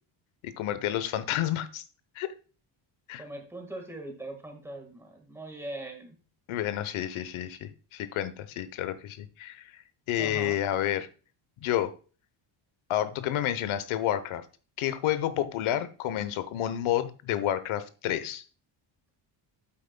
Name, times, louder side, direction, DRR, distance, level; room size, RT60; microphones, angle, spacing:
voice 1, 0.4-1.8 2.2-2.3 3.1-3.2 6.5-9.8 10.1-11.1 11.6-11.9 12.9-14.4 14.8-18.4, left 12 dB, 90° left, 14 dB, 1.0 m, -30 dB
voice 2, 3.1-6.2 10.2-10.6, right 1 dB, 5° right, 3 dB, 1.6 m, -41 dB
8.6 x 8.3 x 2.2 m, 0.36 s
cardioid pair, 180°, 48 cm